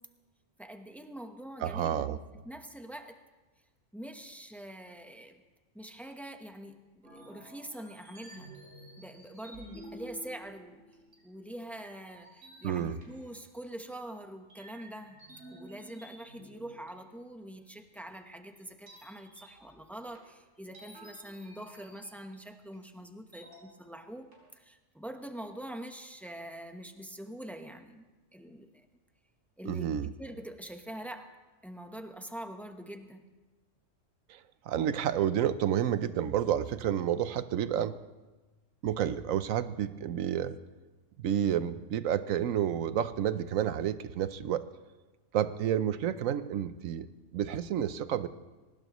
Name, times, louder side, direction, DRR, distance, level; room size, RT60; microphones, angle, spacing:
voice 1, 0.6-2.2 2.4-3.2 3.9-5.4 5.7-8.6 9.0-10.8 11.2-15.2 15.5-28.9 29.6-29.9 30.2-31.3 31.6-33.2, right 1 dB, ahead, 5 dB, 0.9 m, -44 dB
voice 2, 1.6-2.2 12.6-13.0 29.6-30.1 34.3-34.4 34.7-38.0 38.8-40.6 41.2-44.6 45.3-47.1 47.3-48.3, right 10 dB, 80° right, 13 dB, 1.1 m, -30 dB
sound 1, 7.0-11.4 11.7-13.9 14.5-17.5 18.0-18.1 18.9-22.4 22.7-22.8 23.3-24.0 24.3-24.5, right 1 dB, 65° right, 5.1 m, -53 dB
22.5 x 19.0 x 3.1 m, 1.2 s
omnidirectional pair, 1.4 m